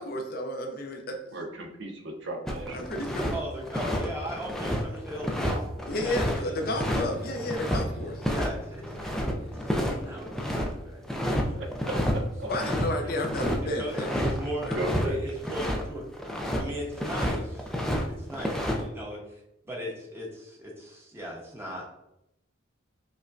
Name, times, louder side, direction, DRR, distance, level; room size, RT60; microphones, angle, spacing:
voice 1, 0.0-1.2 2.7-3.3 5.9-8.2 12.5-14.1 14.7-14.8, left 1 dB, 50° left, 3 dB, 0.6 m, -32 dB
voice 2, 1.3-2.8 11.3-12.5 14.8-15.2, right 1 dB, 65° right, 2 dB, 0.6 m, -36 dB
sound 1, 2.5-3.3 3.6-7.8 8.2-8.5 8.7-10.7 11.1-11.5 11.7-12.2 12.4-15.8 16.1-16.6 17.0-18.0 18.3-18.8, equal, ahead, 0.3 m, -29 dB
voice 3, 3.3-6.5 8.3-9.3 9.5-11.3 11.8-12.0 13.6-14.7 15.0-16.0 16.6-17.7 18.0-21.9, equal, 15° right, -3 dB, 0.9 m, -38 dB
sound 2, 6.6-12.1, left 1 dB, 75° left, 1.3 m, -44 dB
5.0 x 2.2 x 2.5 m, 0.85 s
head